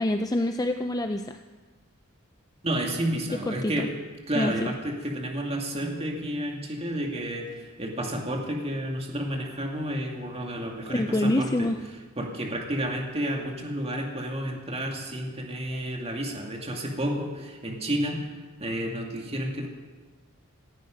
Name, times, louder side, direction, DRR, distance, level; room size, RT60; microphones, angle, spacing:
voice 1, 0.0-1.4 3.5-3.9 4.3-4.7 10.9-11.8, left 1 dB, 15° left, 6 dB, 0.5 m, -26 dB
voice 2, 2.6-4.0 4.3-11.7 12.2-18.3 18.6-19.7, right 1 dB, 30° right, 1 dB, 2.3 m, -31 dB
18.0 x 15.5 x 5.2 m, 1.3 s
head